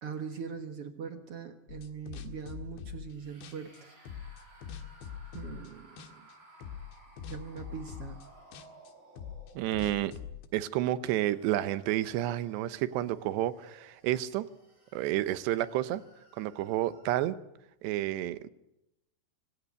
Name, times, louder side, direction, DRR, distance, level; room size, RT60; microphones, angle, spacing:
voice 1, 0.0-3.9 5.3-5.9 7.3-8.2, right 6 dB, 70° right, 8 dB, 1.4 m, -41 dB
sound 1, 1.7-3.2 3.4-5.7 6.0-6.3 6.6-10.5, left 8 dB, 90° left, 3.9 m, -43 dB
sound 2, 3.1-10.1 10.8-17.4, right 2 dB, 45° right, 8.3 m, -58 dB
voice 2, 9.5-10.1 10.5-14.5 14.9-16.0 16.4-17.4 17.8-18.5, right 14 dB, 85° right, 15 dB, 3.2 m, -30 dB
24.5 x 18.0 x 9.5 m, 0.85 s
omnidirectional pair, 4.8 m